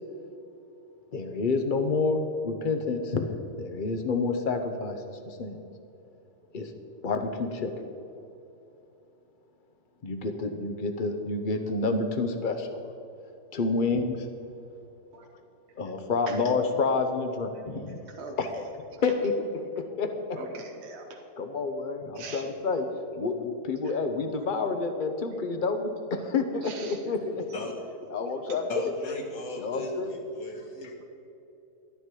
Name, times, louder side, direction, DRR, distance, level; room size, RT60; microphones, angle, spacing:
voice 1, 1.1-3.3 3.6-5.6 6.5-6.7 7.0-7.8 10.0-12.8 13.5-14.3 15.8-18.0 18.4-18.6 19.0-20.4 21.4-22.9 23.2-27.4 28.1-28.9 29.6-30.1, left 3 dB, 40° left, 7 dB, 0.8 m, -29 dB
voice 2, 20.3-21.2 22.1-22.4 26.6-27.0 28.5-28.6, right 4 dB, 45° right, 1 dB, 1.1 m, -41 dB
voice 3, 28.7-31.0, left 2 dB, 60° left, 0 dB, 1.9 m, -37 dB
12.0 x 10.0 x 4.8 m, 2.8 s
omnidirectional pair, 1.8 m